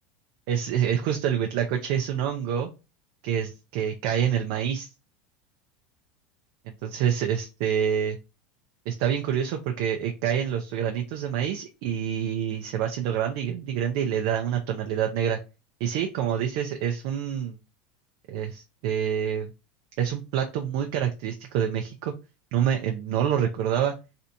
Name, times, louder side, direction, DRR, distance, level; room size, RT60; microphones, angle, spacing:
voice 1, 0.5-2.7 3.2-4.9 6.7-8.2 8.9-15.4 15.8-17.6 18.3-19.5 20.0-22.1 22.5-24.0, right 9 dB, 60° right, 3 dB, 0.5 m, -27 dB
3.3 x 2.8 x 2.6 m, 0.29 s
supercardioid pair, 155°, 0 cm